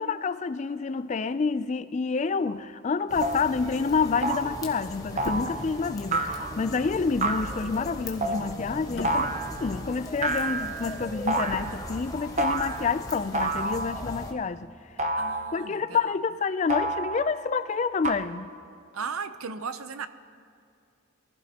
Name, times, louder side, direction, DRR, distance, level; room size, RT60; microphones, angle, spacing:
voice 1, 0.0-14.7 15.0-15.2 15.5-18.5, left 5 dB, 30° left, 0.3 m, -28 dB
sound 1, 2.5-2.6 3.2-3.5 4.2-4.6 5.2-5.6 6.1-6.6 7.2-7.6 8.2-8.5 9.0-9.5 10.2-10.8 11.3-11.7 12.4-12.9 13.3-14.0 15.0-15.7 16.7-17.4 18.0-18.1, right 2 dB, 30° right, 0.8 m, -28 dB
sound 2, 3.1-14.3, left 1 dB, 15° left, 1.1 m, -39 dB
sound 3, 5.1-10.4 10.6-12.5 12.7-12.9, left 1 dB, 80° left, 3.7 m, -42 dB
voice 2, 15.2-16.2 18.9-20.1, right 5 dB, 75° right, 0.6 m, -36 dB
23.0 x 15.0 x 2.9 m
head